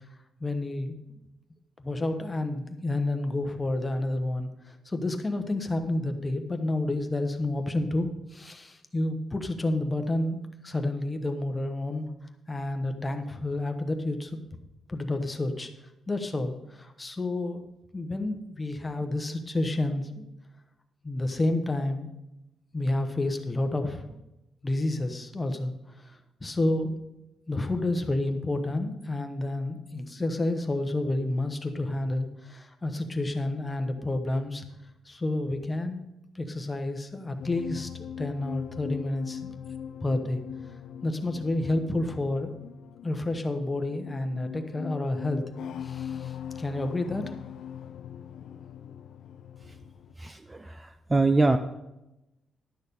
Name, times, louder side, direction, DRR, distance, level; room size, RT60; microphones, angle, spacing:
voice 1, 0.4-1.2 1.8-12.1 12.5-14.4 14.9-15.7 16.1-20.2 21.0-22.1 22.7-24.2 24.6-27.0 27.5-34.7 35.0-36.0 36.3-39.5 40.0-40.4 41.0-42.6 43.0-45.4 45.8-47.3, left 2 dB, 15° left, 6 dB, 0.9 m, -30 dB
sound 1, 37.4-50.1, left 8 dB, 70° left, 0.4 m, -40 dB
voice 2, 50.2-51.6, right 3 dB, 15° right, 9 dB, 0.4 m, -24 dB
11.5 x 6.4 x 5.3 m, 0.92 s
cardioid pair, 145°, 0 cm